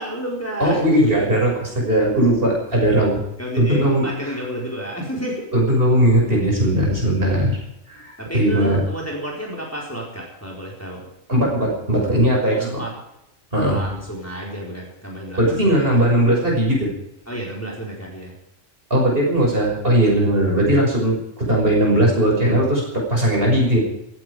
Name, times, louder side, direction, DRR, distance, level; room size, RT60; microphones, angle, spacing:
voice 1, 0.0-1.1 3.4-5.5 8.2-11.1 12.5-12.9 13.6-16.0 17.3-18.4, right 1 dB, 10° left, -2 dB, 4.3 m, -31 dB
voice 2, 0.6-3.2 3.6-4.3 5.5-7.6 7.9-8.8 11.3-12.8 13.5-13.8 15.4-16.9 18.9-23.8, right 1 dB, 45° right, -2 dB, 6.5 m, -18 dB
16.5 x 15.5 x 5.0 m, 0.84 s
omnidirectional pair, 1.4 m